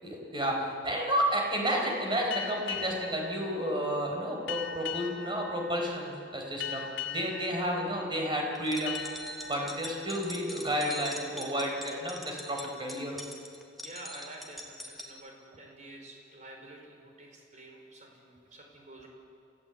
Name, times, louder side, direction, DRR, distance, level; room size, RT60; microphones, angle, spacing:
voice 1, 0.0-9.0 9.5-13.2, equal, 25° right, 1 dB, 4.2 m, -31 dB
sound 1, 2.3-11.6, left 8 dB, 80° left, 2.0 m, -41 dB
sound 2, 8.6-15.1, equal, ahead, 2.2 m, -43 dB
voice 2, 13.8-19.1, right 1 dB, 40° right, 1 dB, 4.6 m, -49 dB
29.0 x 15.5 x 8.2 m, 2.6 s
head